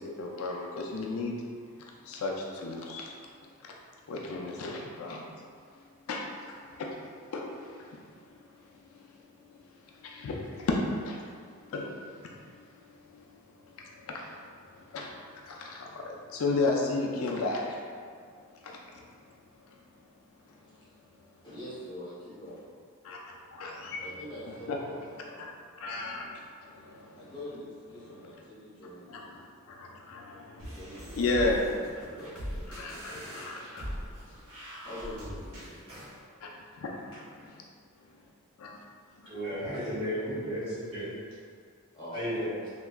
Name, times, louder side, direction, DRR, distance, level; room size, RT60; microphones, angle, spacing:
voice 1, 0.0-1.3 1.8-3.1 3.6-3.7 4.1-5.3 6.1-6.5 6.8-6.9 7.3-7.9 8.3-8.4 10.0-10.8 11.0-11.3 11.7-12.6 13.1-13.2 14.1-14.5 14.9-17.8 18.6-19.0 23.0-23.2 23.5-24.0 24.7-24.8 25.4-25.5 25.8-27.3 28.2-28.3 28.8-30.8 31.1-31.7 32.7-34.0 36.4-37.1 38.6-38.8, left 3 dB, 75° left, 0 dB, 0.4 m, -34 dB
voice 2, 21.4-22.8 24.0-25.7 27.1-29.5 30.7-33.4 34.1-34.6 34.8-35.9 37.1-37.2 41.9-42.4, equal, 20° left, -10 dB, 1.0 m, -45 dB
sound 1, 30.6-36.2, equal, 75° right, 1.1 m, -41 dB
voice 3, 39.2-41.1 42.1-42.6, equal, 30° right, -12 dB, 1.4 m, -33 dB
3.4 x 2.7 x 2.3 m, 2.1 s
head